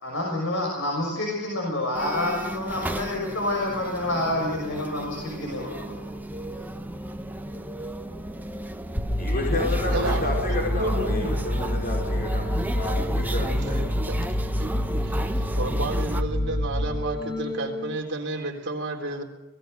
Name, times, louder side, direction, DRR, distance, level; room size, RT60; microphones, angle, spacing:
voice 1, 0.0-6.0, left 1 dB, 60° left, -1 dB, 6.1 m, -28 dB
sound 1, 1.9-16.2, right 1 dB, 10° right, 1.3 m, -35 dB
sound 2, 9.0-18.0, equal, 15° left, 2.3 m, -27 dB
voice 2, 9.2-12.4 12.7-13.9, left 2 dB, 45° left, -2 dB, 4.8 m, -30 dB
voice 3, 9.9-11.4 13.6-13.7 14.0-14.2 14.6-14.7 14.9-19.2, right 2 dB, 55° right, 2 dB, 3.7 m, -32 dB
25.5 x 19.0 x 6.6 m, 1.1 s
head